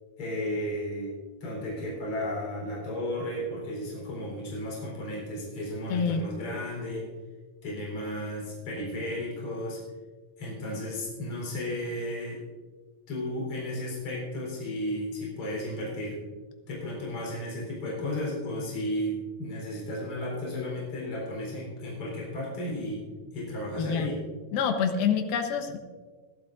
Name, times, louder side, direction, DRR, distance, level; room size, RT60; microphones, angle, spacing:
voice 1, 0.2-7.1 7.6-9.8 10.4-12.4 13.1-16.2 16.7-23.0 23.3-24.2, left 1 dB, 40° left, -3 dB, 4.8 m, -34 dB
voice 2, 5.9-6.2 23.8-24.1 24.5-25.8, left 6 dB, 85° left, 6 dB, 2.9 m, -26 dB
21.5 x 12.0 x 2.6 m, 1.4 s
omnidirectional pair, 4.2 m